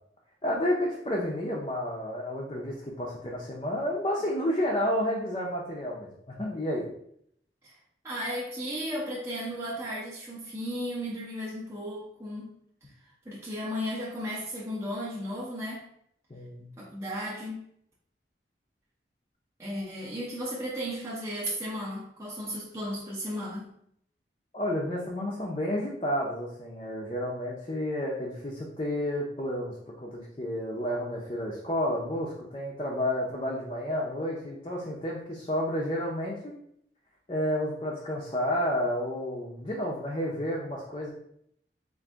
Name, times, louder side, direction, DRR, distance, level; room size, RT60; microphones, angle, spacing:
voice 1, 0.4-6.9 16.3-16.7 24.5-29.7 30.0-36.5 37.3-41.1, left 1 dB, 30° left, -3 dB, 0.5 m, -31 dB
voice 2, 8.0-12.6 12.8-15.8 16.8-17.7 19.6-23.7, equal, 15° right, -6 dB, 0.6 m, -35 dB
3.8 x 2.6 x 3.4 m, 0.70 s
head